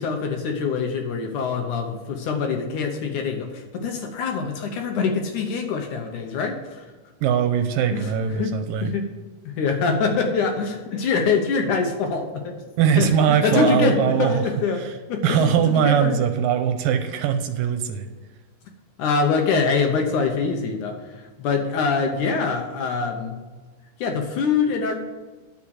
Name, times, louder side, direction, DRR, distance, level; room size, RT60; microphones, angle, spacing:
voice 1, 0.0-6.9 7.9-8.1 8.4-8.5 8.8-9.1 9.5-12.6 13.0-16.2 19.0-23.4 24.0-24.9, left 5 dB, 70° left, 3 dB, 2.2 m, -24 dB
voice 2, 7.2-8.9 12.8-14.5 14.8-14.9 15.2-18.1, right 8 dB, 75° right, 7 dB, 2.3 m, -21 dB
9.7 x 7.4 x 6.5 m, 1.3 s
omnidirectional pair, 4.2 m